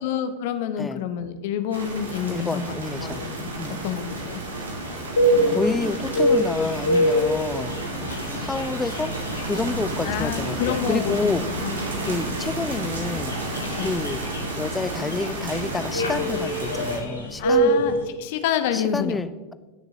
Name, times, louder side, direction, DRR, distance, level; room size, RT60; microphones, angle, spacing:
voice 1, 0.0-3.5 3.8-4.4 10.0-11.7 13.8-14.0 17.4-19.2, left 8 dB, 50° left, 10 dB, 0.9 m, -28 dB
sound 1, 1.7-17.0, right 2 dB, 70° right, 1.9 m, -32 dB
voice 2, 2.3-3.2 3.6-3.8 5.5-7.7 8.4-9.1 9.4-11.4 12.1-13.4 13.8-17.7 18.7-19.5, left 3 dB, 10° left, 14 dB, 0.5 m, -29 dB
sound 2, 5.2-18.0, equal, 75° left, 1.5 m, -26 dB
19.0 x 6.6 x 2.9 m, 1.2 s
figure-of-eight pair, 90°, 0 cm